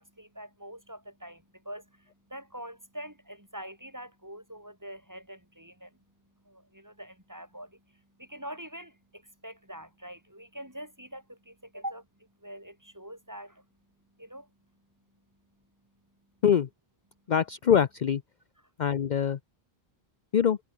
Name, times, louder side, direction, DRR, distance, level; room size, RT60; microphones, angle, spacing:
voice 1, 0.0-16.4 17.1-17.3, equal, 15° right, 5.4 m, -45 dB
voice 2, 17.3-18.2 18.8-19.4 20.3-20.6, left 8 dB, 50° left, 0.7 m, -23 dB
omnidirectional pair, 1.0 m